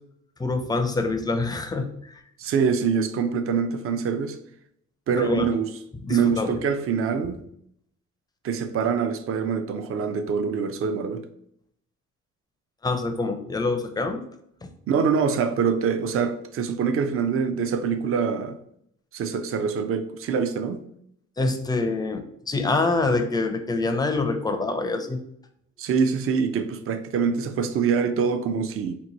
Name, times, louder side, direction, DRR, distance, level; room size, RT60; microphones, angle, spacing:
voice 1, 0.4-2.2 5.1-5.5 6.0-6.6 12.8-14.2 14.6-14.7 21.4-25.2, left 3 dB, 15° left, 0.4 m, -26 dB
voice 2, 2.4-4.4 5.1-5.7 6.1-7.4 8.4-11.3 14.9-18.6 19.1-20.9 25.8-28.9, right 6 dB, 50° right, 0.4 m, -24 dB
2.9 x 2.2 x 3.9 m
cardioid pair, 90°, 30 cm